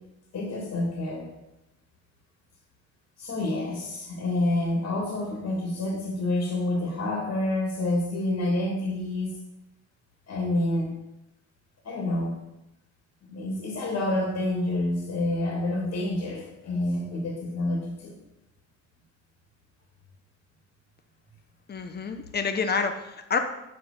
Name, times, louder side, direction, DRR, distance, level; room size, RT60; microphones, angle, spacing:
voice 1, 0.3-1.3 3.2-9.3 10.3-11.0 11.8-12.4 13.2-18.2, left 1 dB, 60° left, -1 dB, 2.8 m, -28 dB
voice 2, 21.7-23.4, left 5 dB, 35° left, 6 dB, 1.1 m, -28 dB
8.4 x 6.3 x 7.1 m, 0.91 s
cardioid pair, 90°, 30 cm